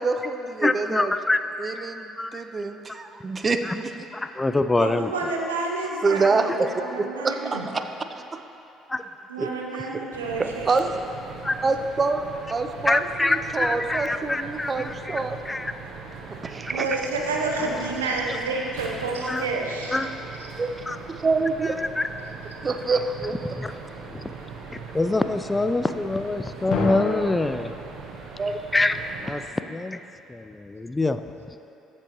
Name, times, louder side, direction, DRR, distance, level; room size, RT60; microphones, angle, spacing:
voice 1, 0.0-1.1 1.6-4.1 6.0-7.8 8.2-8.4 9.4-9.5 9.8-10.0 10.4-10.9 11.6-15.4 16.3-16.9 20.6-20.7 21.2-21.7 22.6-23.4 28.4-28.6, right 3 dB, 35° right, 7 dB, 0.6 m, -26 dB
voice 2, 0.6-1.4 2.2-2.3 3.6-3.8 4.1-5.1 8.9-9.0 11.4-11.6 12.8-15.7 19.3-19.5 19.9-20.1 20.9-21.0 21.6-22.1 23.6-23.7 24.1-24.3 24.9-27.7 28.7-29.4 29.7-30.0 30.3-31.2, left 2 dB, 20° left, 10 dB, 0.4 m, -25 dB
voice 3, 4.8-7.7 9.3-10.7 16.7-20.0, right 3 dB, 90° right, 0 dB, 0.9 m, -29 dB
sound 1, 10.1-29.4, right 5 dB, 65° right, 1.1 m, -40 dB
sound 2, 17.6-19.6 26.7-27.4, left 3 dB, 55° left, 1.4 m, -31 dB
14.5 x 7.4 x 3.1 m, 3.0 s
hypercardioid pair, 55°, 0 cm